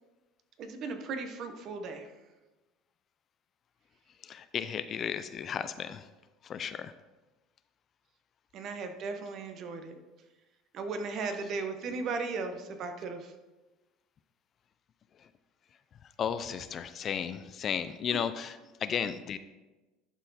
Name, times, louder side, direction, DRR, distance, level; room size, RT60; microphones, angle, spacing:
voice 1, 0.6-2.1 8.5-10.0 10.7-13.3, right 4 dB, 45° right, 7 dB, 1.0 m, -36 dB
voice 2, 4.2-6.1 6.4-6.9 15.2-15.3 16.0-19.4, left 8 dB, 35° left, 12 dB, 0.4 m, -34 dB
11.0 x 4.5 x 4.2 m, 1.1 s
supercardioid pair, 120°, 0 cm